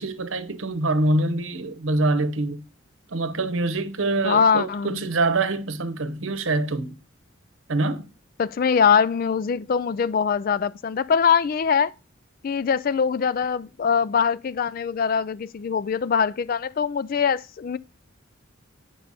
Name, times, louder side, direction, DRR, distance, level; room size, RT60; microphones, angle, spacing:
voice 1, 0.0-2.6 3.1-6.9 7.7-8.1, right 2 dB, 75° right, 0.9 m, -25 dB
voice 2, 4.2-5.1 8.4-11.9 12.4-17.8, left 6 dB, 45° left, 0.3 m, -22 dB
8.5 x 5.4 x 4.0 m
head